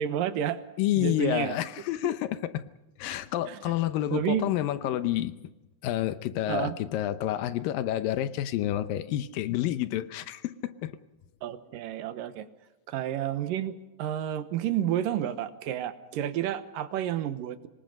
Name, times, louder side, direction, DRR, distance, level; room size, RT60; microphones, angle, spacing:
voice 1, 0.0-0.6 0.9-1.6 2.0-2.2 3.5-3.6 4.1-4.5 6.5-6.8 11.4-12.5 12.9-17.7, right 10 dB, 80° right, 11 dB, 2.8 m, -30 dB
voice 2, 0.8-2.6 3.0-5.3 5.8-11.0, left 13 dB, 80° left, 13 dB, 2.6 m, -29 dB
25.5 x 21.0 x 5.4 m, 1.0 s
omnidirectional pair, 4.0 m